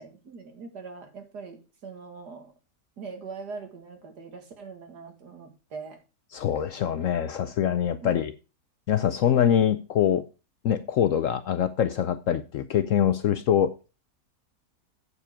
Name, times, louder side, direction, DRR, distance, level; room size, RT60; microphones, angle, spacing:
voice 1, 0.0-2.5 3.0-6.0 8.0-8.3, right 4 dB, 75° right, 2.5 m, -42 dB
voice 2, 6.3-8.3 8.9-10.3 10.6-13.9, left 9 dB, 65° left, 0.8 m, -24 dB
8.3 x 7.4 x 4.9 m
omnidirectional pair, 1.8 m